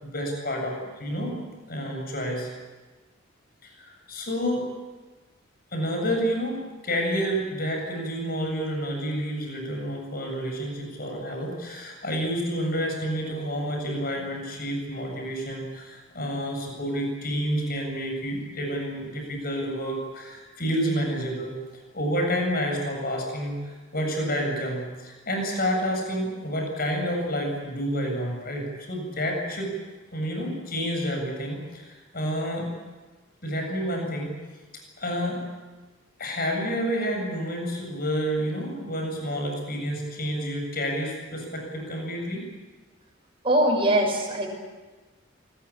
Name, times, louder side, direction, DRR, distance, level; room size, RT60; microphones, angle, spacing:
voice 1, 0.0-2.5 3.6-4.7 5.7-21.6 21.9-29.8 30.1-32.7 33.4-34.3 35.0-35.4 36.2-42.5, equal, 45° left, 2 dB, 7.8 m, -29 dB
voice 2, 43.4-44.5, right 1 dB, 25° right, 0 dB, 6.4 m, -21 dB
26.0 x 20.0 x 8.7 m, 1.3 s
head